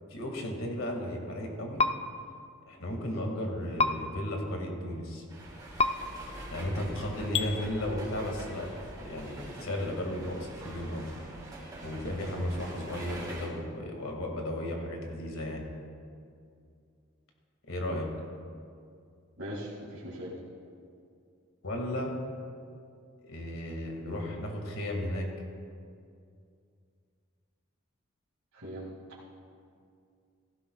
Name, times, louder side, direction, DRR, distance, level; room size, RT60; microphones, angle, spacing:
voice 1, 0.1-1.8 2.7-5.3 6.5-8.7 8.9-11.1 11.8-15.6 17.7-18.1 21.6-22.1 23.2-25.3, left 1 dB, 75° left, 1 dB, 2.0 m, -34 dB
sound 1, 1.8-1.9 3.8-3.9 5.8-5.9 7.3-7.5, left 3 dB, 30° left, 0.4 m, -24 dB
sound 2, 5.3-13.5, right 1 dB, 20° right, 3.0 m, -44 dB
voice 2, 19.4-20.4 28.5-28.9, equal, 75° right, -7 dB, 2.2 m, -40 dB
17.0 x 15.0 x 2.3 m, 2.3 s
head